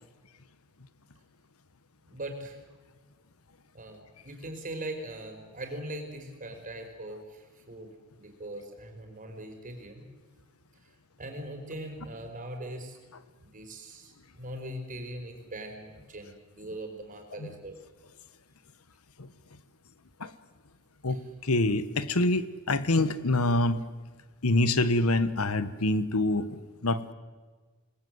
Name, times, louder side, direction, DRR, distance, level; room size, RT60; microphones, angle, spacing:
voice 1, 2.0-2.6 3.7-7.9 8.1-10.1 11.2-13.0 13.4-17.7 21.1-21.2, right 1 dB, 40° right, 4 dB, 4.7 m, -41 dB
voice 2, 21.0-23.8 24.4-27.1, left 2 dB, 80° left, 14 dB, 1.3 m, -26 dB
28.0 x 20.5 x 8.1 m, 1.4 s
head